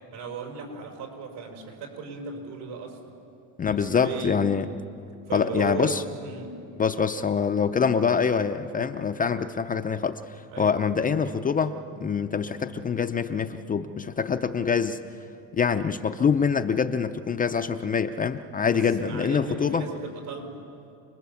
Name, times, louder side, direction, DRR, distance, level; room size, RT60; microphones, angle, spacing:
voice 1, 0.1-3.0 3.6-4.4 5.3-6.6 10.5-10.8 18.7-20.6, right 5 dB, 80° right, 1 dB, 5.8 m, -36 dB
voice 2, 3.6-4.7 5.3-6.0 6.8-11.7 12.0-15.0 15.5-19.8, left 6 dB, 20° left, 7 dB, 0.5 m, -25 dB
28.5 x 20.5 x 7.1 m, 2.6 s
cardioid pair, 140°, 42 cm